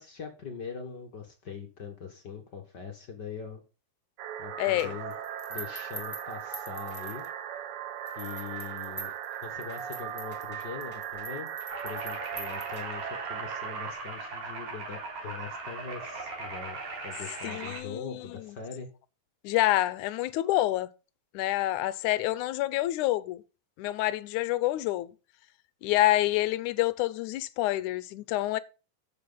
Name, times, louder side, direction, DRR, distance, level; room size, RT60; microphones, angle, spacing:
voice 1, 0.0-3.6 4.4-5.1 5.5-7.2 8.1-9.1 9.4-11.5 11.8-16.8 17.0-18.9, left 6 dB, 50° left, 1.3 m, -42 dB
sound 1, 4.2-13.9, right 10 dB, 75° right, 2.7 m, -38 dB
voice 2, 4.6-4.9 17.4-18.5 19.4-20.9 21.3-23.4 23.8-25.1 25.8-28.6, left 16 dB, 75° left, 2.0 m, -27 dB
sound 2, 4.8-7.6 8.1-13.2, right 2 dB, 10° left, 2.3 m, -45 dB
sound 3, 11.7-17.8, right 3 dB, 55° right, 4.9 m, -39 dB
11.0 x 7.8 x 4.0 m
omnidirectional pair, 4.0 m